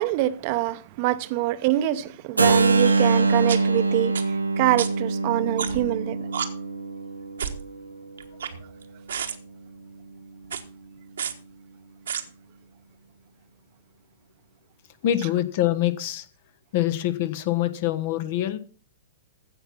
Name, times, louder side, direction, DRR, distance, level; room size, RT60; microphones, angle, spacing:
voice 1, 0.0-6.3, right 16 dB, 45° right, 0.9 m, -25 dB
Keyboard (musical), 2.4-8.2, right 3 dB, 85° right, 0.9 m, -24 dB
sound 1, 3.5-3.6 4.2-4.3 4.8-4.9 5.6-5.9 6.3-6.5 7.4-7.6 8.2-8.8 9.1-9.4 10.4-10.6 11.2-11.3 12.1-12.2, right 8 dB, 70° right, 1.3 m, -30 dB
voice 2, 15.0-16.3 16.7-18.6, left 13 dB, 50° left, 1.2 m, -25 dB
15.5 x 5.9 x 5.9 m
figure-of-eight pair, 110°, 0 cm